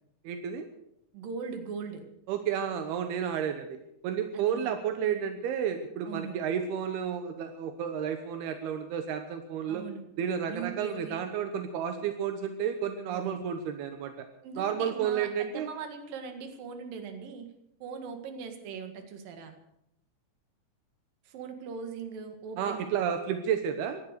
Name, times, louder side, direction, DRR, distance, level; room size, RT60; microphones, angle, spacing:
voice 1, 0.2-0.7 2.3-9.8 10.2-14.3 14.6-15.7 22.6-24.0, right 8 dB, 80° right, 7 dB, 3.0 m, -31 dB
voice 2, 1.1-2.1 4.3-4.7 6.0-6.4 9.7-10.0 10.4-11.2 13.1-13.4 14.4-17.5 17.8-19.6 21.3-22.9, right 5 dB, 65° right, 6 dB, 3.4 m, -40 dB
17.5 x 12.5 x 6.6 m, 0.79 s
omnidirectional pair, 4.5 m